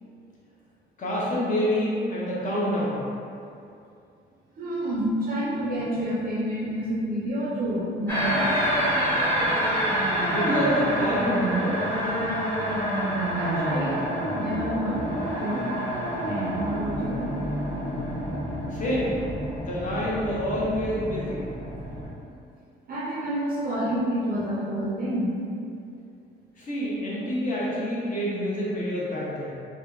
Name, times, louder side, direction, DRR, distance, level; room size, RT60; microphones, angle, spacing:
voice 1, 1.0-3.0 10.2-11.9 18.7-19.2 19.6-21.5 26.6-29.5, equal, 40° left, -7 dB, 0.7 m, -27 dB
voice 2, 4.6-8.7 13.3-14.0 14.3-15.1 15.4-15.7 16.3-17.4 22.9-25.4, equal, 45° right, -6 dB, 0.4 m, -29 dB
sound 1, 8.1-22.1, equal, 10° left, 0.8 m, -27 dB
2.7 x 2.1 x 2.3 m, 2.5 s
cardioid pair, 90°, 20 cm